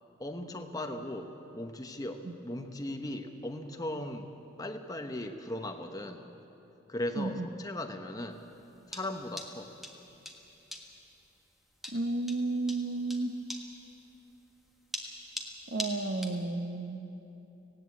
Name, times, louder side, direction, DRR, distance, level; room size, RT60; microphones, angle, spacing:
voice 1, 0.2-4.3 4.6-6.3 6.9-8.4 8.9-9.7, left 1 dB, 20° left, 5 dB, 1.0 m, -38 dB
voice 2, 7.2-7.5 11.9-13.4 15.7-17.1, right 2 dB, 55° right, 8 dB, 1.0 m, -32 dB
sound 1, 8.3-16.4, left 1 dB, ahead, 1.5 m, -42 dB
18.5 x 17.0 x 8.5 m, 3.0 s
head